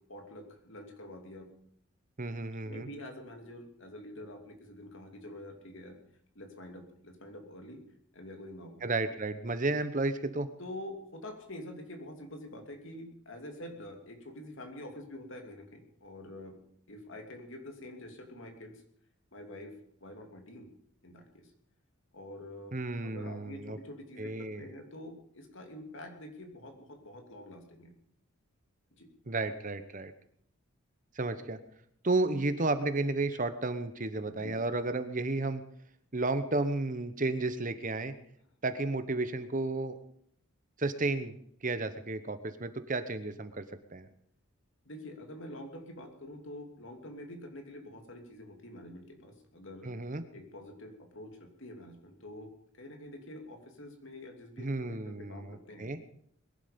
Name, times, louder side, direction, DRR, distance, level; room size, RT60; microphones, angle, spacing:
voice 1, 0.1-1.5 2.6-6.0 6.3-7.8 8.1-8.8 10.6-16.6 16.9-18.8 19.3-20.7 21.0-21.5 22.1-22.7 23.0-27.9 29.0-29.1 34.2-34.5 44.8-49.9 50.3-52.5 52.8-55.9, left 1 dB, 60° left, 4 dB, 2.9 m, -46 dB
voice 2, 2.2-2.9 8.8-10.5 22.7-23.8 24.2-24.7 29.3-30.1 31.1-31.6 32.0-35.6 36.1-38.1 38.6-40.0 40.8-41.3 41.6-43.6 43.9-44.1 49.8-50.2 54.6-56.0, right 2 dB, 35° right, 11 dB, 1.0 m, -32 dB
21.5 x 11.5 x 5.3 m, 0.68 s
head